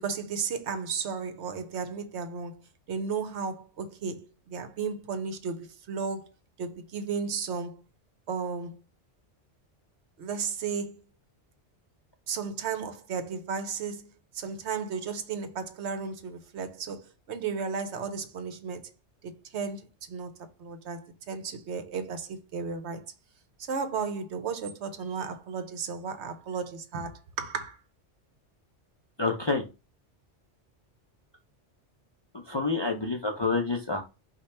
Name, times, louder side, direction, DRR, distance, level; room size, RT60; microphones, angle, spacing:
voice 1, 0.0-6.3 6.6-7.8 8.3-8.8 10.2-11.0 12.3-14.1 14.3-18.9 19.2-23.0 23.7-27.8, right 5 dB, 70° right, 1.0 m, -34 dB
voice 2, 29.2-29.6 32.5-34.0, left 3 dB, 35° left, 0.4 m, -28 dB
5.0 x 2.2 x 4.2 m
omnidirectional pair, 1.2 m